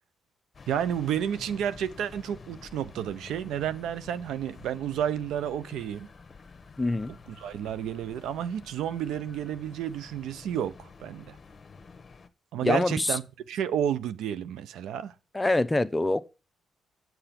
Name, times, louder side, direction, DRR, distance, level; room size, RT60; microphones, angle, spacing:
sound 1, 0.5-12.3, left 4 dB, 40° left, 1.0 m, -50 dB
voice 1, 0.7-6.1 7.3-11.4 12.5-13.2 13.5-15.1, right 9 dB, 90° right, 0.6 m, -31 dB
sound 2, 0.9-6.3, right 1 dB, 65° right, 5.8 m, -60 dB
voice 2, 6.8-7.1 12.6-13.2 15.3-16.2, left 2 dB, 15° left, 0.7 m, -25 dB
8.0 x 6.9 x 5.8 m
cardioid pair, 90°, 0 cm